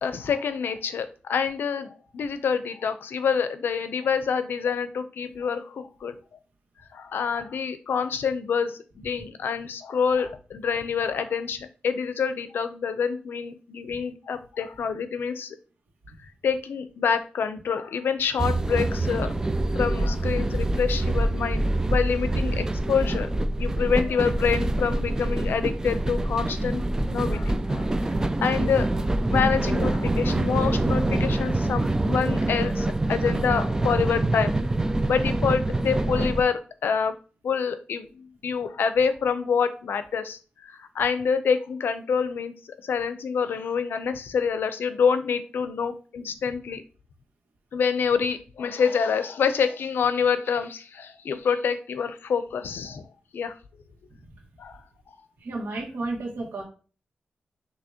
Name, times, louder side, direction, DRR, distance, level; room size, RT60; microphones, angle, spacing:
voice 1, 0.0-6.2 6.9-15.6 16.4-19.4 19.8-23.3 23.6-26.8 27.1-27.9 28.4-28.9 29.3-34.6 35.1-37.1 37.4-42.5 42.8-46.8 47.7-53.1 53.3-53.5 54.6-54.8, left 6 dB, 85° left, 10 dB, 0.5 m, -27 dB
sound 1, 18.4-36.4, right 2 dB, 20° right, 0.4 m, -25 dB
voice 2, 55.4-56.6, right 2 dB, 85° right, 0 dB, 1.6 m, -32 dB
6.2 x 2.9 x 2.8 m, 0.38 s
wide cardioid pair, 110°, 4 cm